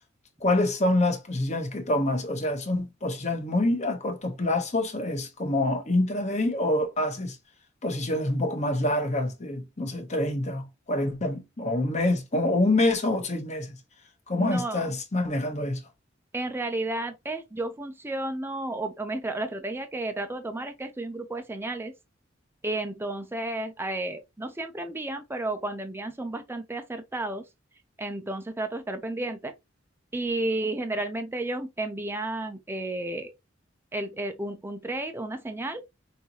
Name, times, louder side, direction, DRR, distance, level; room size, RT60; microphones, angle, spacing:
voice 1, 0.4-7.4 7.8-13.8 14.3-15.8, left 1 dB, 35° left, 1.1 m, -26 dB
voice 2, 14.4-14.8 16.3-21.9 22.6-27.4 28.0-29.5 30.1-33.3 33.9-35.8, right 2 dB, 10° right, 0.5 m, -32 dB
5.5 x 2.6 x 2.9 m
head